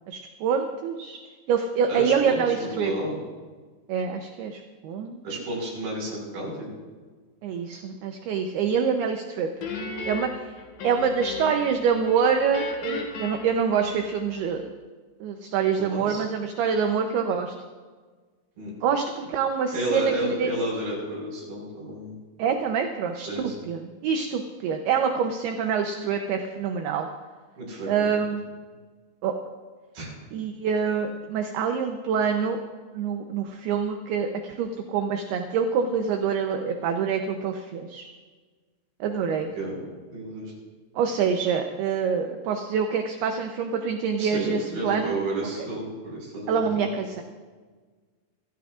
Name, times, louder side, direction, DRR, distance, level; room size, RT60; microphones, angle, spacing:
voice 1, 0.1-1.2 1.5-2.9 3.9-5.2 7.4-9.5 10.1-10.5 10.8-14.6 15.2-17.5 18.8-20.5 22.4-27.1 27.9-28.5 29.2-29.4 30.3-32.6 32.9-38.1 39.0-39.5 41.0-45.2 46.5-47.2, right 6 dB, 75° right, 4 dB, 2.5 m, -26 dB
voice 2, 1.9-3.2 5.2-6.7 15.8-16.2 18.6-18.7 19.7-22.1 23.3-23.5 27.6-28.2 29.9-30.1 39.6-39.8 40.1-40.5 44.2-46.9, right 1 dB, 50° right, -3 dB, 7.1 m, -31 dB
Guitar, 9.6-11.8 12.1-14.4, left 4 dB, 55° left, 3.0 m, -35 dB
25.0 x 15.5 x 2.5 m, 1.4 s
omnidirectional pair, 5.3 m